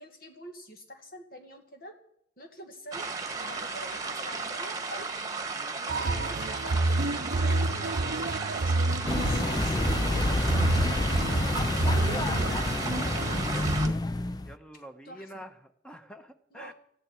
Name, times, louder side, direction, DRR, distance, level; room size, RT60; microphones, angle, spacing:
voice 1, 0.0-2.0 2.4-5.1 5.8-13.8 15.0-15.4 16.5-16.7, equal, 55° left, 4 dB, 2.2 m, -46 dB
sound 1, 2.9-13.9, right 4 dB, 20° right, 1.5 m, -35 dB
sound 2, 5.9-13.9, right 2 dB, 60° right, 0.7 m, -29 dB
sound 3, 9.1-14.5, left 2 dB, 20° left, 0.5 m, -28 dB
voice 2, 14.4-16.7, equal, 5° left, 7 dB, 1.2 m, -47 dB
20.0 x 14.0 x 4.6 m, 0.69 s
head